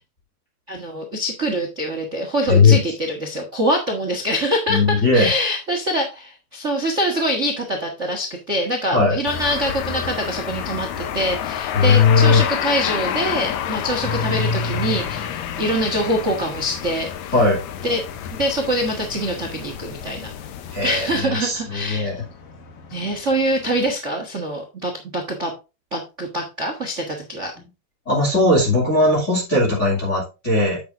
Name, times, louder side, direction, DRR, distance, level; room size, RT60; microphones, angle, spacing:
voice 1, 0.7-17.3 17.8-18.0 18.4-20.3 20.8-22.1 22.9-25.5 25.9-27.5, equal, 85° right, 3 dB, 0.6 m, -24 dB
voice 2, 4.7-5.3 8.9-9.2 11.7-12.4 17.3-17.6 20.7-22.2 28.1-30.8, left 3 dB, 20° left, -2 dB, 2.6 m, -17 dB
sound 1, 9.2-21.2, left 10 dB, 80° left, 1.6 m, -29 dB
sound 2, 14.0-23.9, left 3 dB, 55° left, 1.7 m, -34 dB
9.2 x 8.0 x 2.6 m, 0.27 s
omnidirectional pair, 4.3 m